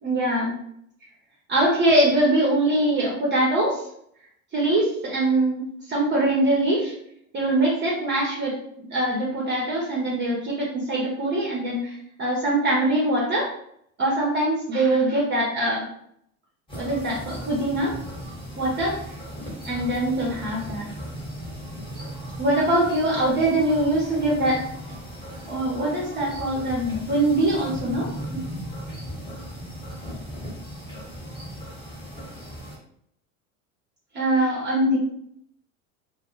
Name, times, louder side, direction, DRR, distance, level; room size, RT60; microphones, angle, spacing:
voice 1, 0.0-0.6 1.5-3.8 4.5-6.9 7.3-8.5 8.9-13.5 14.0-15.8 16.8-17.9 18.6-19.0 19.4-20.9 22.4-24.6 25.5-28.4 34.1-35.0, right 1 dB, 25° right, -4 dB, 0.8 m, -23 dB
sound 1, 16.7-32.8, equal, 10° left, 1.1 m, -37 dB
2.2 x 2.1 x 3.0 m, 0.70 s
hypercardioid pair, 85°, 41 cm